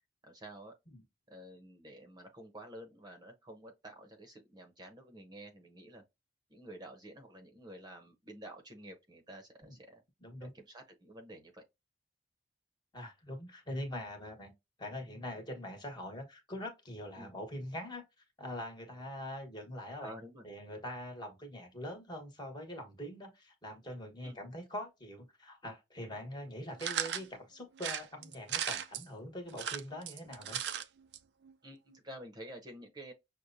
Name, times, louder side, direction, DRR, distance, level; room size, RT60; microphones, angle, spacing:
voice 1, 0.2-0.7 1.3-6.0 6.5-10.0 10.4-11.6 17.2-17.3 20.0-20.4 24.2-24.4 31.6-33.1, right 1 dB, 25° right, 0.8 m, -50 dB
voice 2, 10.2-10.5 12.9-14.5 14.8-18.0 18.4-20.1 20.4-30.6, left 1 dB, 25° left, 1.3 m, -43 dB
sound 1, 26.8-27.3 27.8-29.0 29.5-30.8 31.1-31.2 31.4-31.5, right 9 dB, 75° right, 0.4 m, -36 dB
6.3 x 2.2 x 2.6 m
head